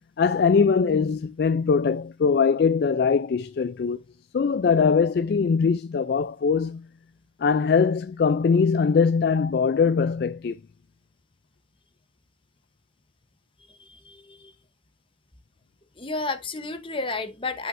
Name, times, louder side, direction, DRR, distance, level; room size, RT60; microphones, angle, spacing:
voice 1, 0.2-4.0 4.3-6.9 7.4-10.6, left 5 dB, 55° left, 0.3 m, -21 dB
voice 2, 13.8-14.5 16.0-17.7, left 3 dB, 25° left, 0.9 m, -32 dB
11.0 x 5.7 x 2.6 m
head